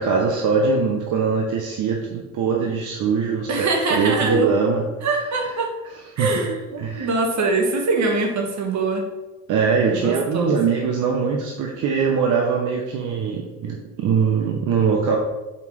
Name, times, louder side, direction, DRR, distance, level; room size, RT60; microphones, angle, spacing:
voice 1, 0.0-4.8 6.2-6.3 6.8-7.1 9.5-15.2, right 5 dB, 85° right, 1 dB, 0.9 m, -22 dB
voice 2, 3.5-4.5 5.0-5.7 6.2-9.1 9.9-10.6, right 3 dB, 65° right, 2 dB, 1.6 m, -23 dB
5.4 x 4.7 x 5.4 m, 1.1 s
cardioid pair, 90°, 30 cm